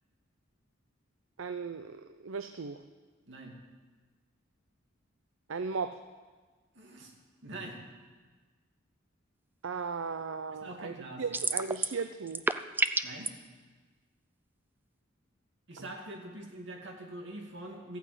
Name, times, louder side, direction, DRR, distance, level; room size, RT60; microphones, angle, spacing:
voice 1, 1.4-2.8 5.5-6.0 9.6-12.5, right 5 dB, 80° right, 9 dB, 0.6 m, -37 dB
voice 2, 6.7-7.1 7.4-7.8 10.5-11.2 13.0-13.3 15.7-18.0, right 1 dB, 65° right, 1 dB, 2.4 m, -44 dB
sound 1, 11.3-12.0 12.3-13.3, right 3 dB, 10° right, 0.4 m, -29 dB
14.5 x 9.1 x 7.9 m, 1.4 s
head